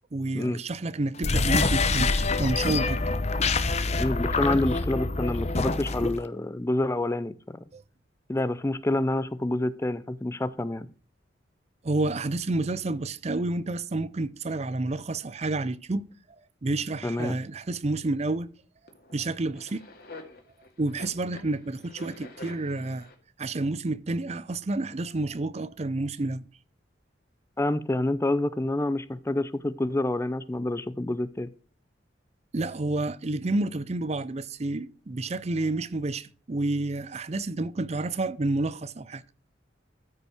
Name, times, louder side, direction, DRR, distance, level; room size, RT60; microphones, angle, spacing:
voice 1, 0.1-2.1 2.4-3.1 7.7-7.8 11.8-16.1 16.6-18.5 19.1-19.9 20.8-23.1 23.4-26.5 32.5-39.2, right 2 dB, 35° right, 0.5 m, -29 dB
sound 1, 1.2-6.2, left 3 dB, 35° left, 0.8 m, -26 dB
voice 2, 4.0-7.6 8.3-10.9 17.0-17.4 27.6-31.5, left 1 dB, 15° left, 0.4 m, -28 dB
sound 2, 18.9-23.2, left 2 dB, 55° left, 2.1 m, -47 dB
13.5 x 5.4 x 4.9 m
head